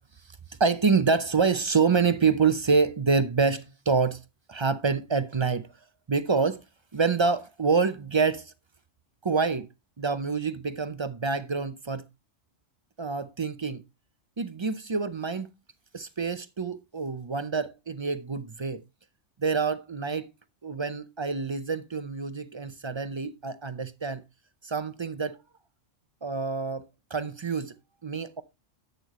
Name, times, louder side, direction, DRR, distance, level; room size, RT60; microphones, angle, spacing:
voice 1, 0.6-4.2 4.5-5.7 6.1-6.6 6.9-8.5 9.2-9.7 10.0-12.0 13.0-13.8 14.4-15.5 15.9-18.8 19.4-20.3 20.6-24.2 24.6-25.4 26.2-26.9 27.1-27.7 28.0-28.4, right 5 dB, 40° right, 0.4 m, -26 dB
10.5 x 8.2 x 3.0 m
omnidirectional pair, 1.2 m